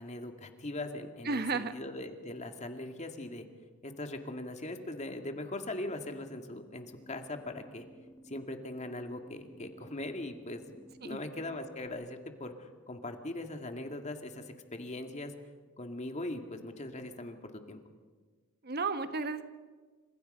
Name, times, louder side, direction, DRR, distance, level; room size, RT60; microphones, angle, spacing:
voice 1, 0.0-3.5 3.8-7.9 8.2-14.4 14.7-15.3 15.8-17.8, left 2 dB, 35° left, 5 dB, 2.2 m, -40 dB
voice 2, 1.2-1.7 11.0-11.2 18.6-19.4, right 4 dB, 50° right, 9 dB, 1.3 m, -33 dB
sound 1, 6.9-11.9, right 1 dB, 15° left, 2.5 m, -55 dB
29.5 x 26.5 x 5.6 m, 1.4 s
head